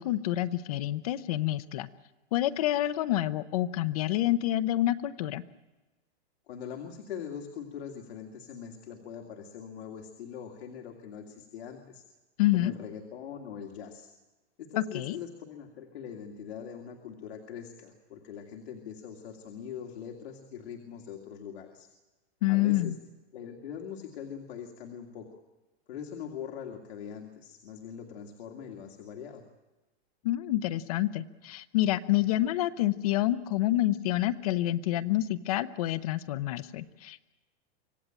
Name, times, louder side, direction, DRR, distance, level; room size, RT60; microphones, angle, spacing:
voice 1, 0.0-1.9 2.3-5.4 12.4-12.7 14.9-15.2 22.4-22.9 30.2-37.3, left 14 dB, 35° left, 12 dB, 0.7 m, -28 dB
voice 2, 6.5-12.0 12.5-14.1 14.6-21.9 22.5-22.9 23.3-25.4 25.9-29.4, left 8 dB, 70° left, 2 dB, 2.5 m, -42 dB
25.5 x 16.5 x 8.9 m, 1.2 s
supercardioid pair, 180°, 33 cm